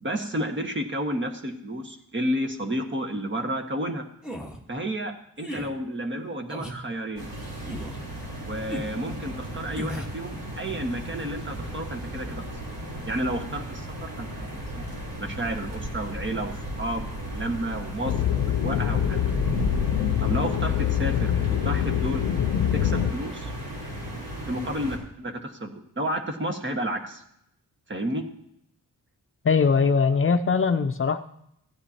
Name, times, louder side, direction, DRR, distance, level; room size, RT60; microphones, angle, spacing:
voice 1, 0.0-4.1 4.7-7.3 8.4-12.4 13.0-14.5 15.2-16.5 16.8-19.2 20.2-22.2 22.7-23.5 24.5-27.2 27.9-28.2, right 1 dB, 35° right, 5 dB, 1.5 m, -31 dB
sound 1, 4.2-4.6 5.4-5.7 6.5-6.8 7.6-8.0 8.7-9.0 9.7-10.1, equal, 5° right, 1.4 m, -35 dB
sound 2, 7.2-25.0, right 1 dB, 85° right, 3.6 m, -35 dB
sound 3, 18.0-23.1, left 10 dB, 90° left, 0.5 m, -25 dB
voice 2, 29.4-31.2, left 5 dB, 40° left, 8 dB, 0.5 m, -21 dB
15.0 x 10.0 x 2.9 m, 0.75 s
cardioid pair, 95°, 34 cm